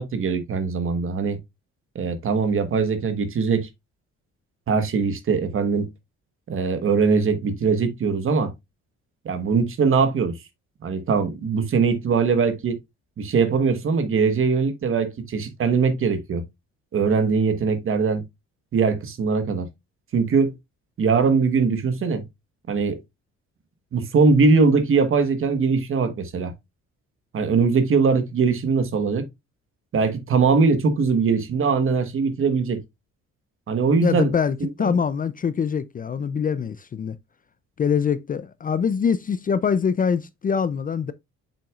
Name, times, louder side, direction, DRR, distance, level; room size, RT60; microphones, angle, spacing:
voice 1, 0.0-1.4 1.9-3.7 4.7-5.9 6.5-8.5 9.2-10.3 10.8-12.8 13.2-16.4 16.9-18.2 18.7-19.7 20.1-20.5 21.0-22.2 22.7-23.0 23.9-26.5 27.3-29.3 29.9-32.8 33.7-34.3 34.6-35.0, right 5 dB, 45° right, 1.3 m, -21 dB
voice 2, 34.0-37.2 37.8-41.1, left 6 dB, 30° left, 0.4 m, -24 dB
7.1 x 5.8 x 2.3 m
cardioid pair, 130°, 29 cm